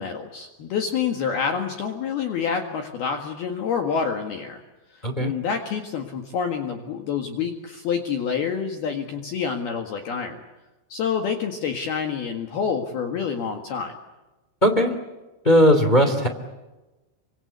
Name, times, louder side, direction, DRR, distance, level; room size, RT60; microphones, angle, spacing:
voice 1, 0.0-4.6 5.2-10.4 10.9-13.9, left 6 dB, 60° left, 4 dB, 3.1 m, -27 dB
voice 2, 14.6-14.9 15.4-16.3, equal, 20° left, 6 dB, 1.3 m, -17 dB
28.0 x 25.5 x 8.1 m, 1.1 s
omnidirectional pair, 6.0 m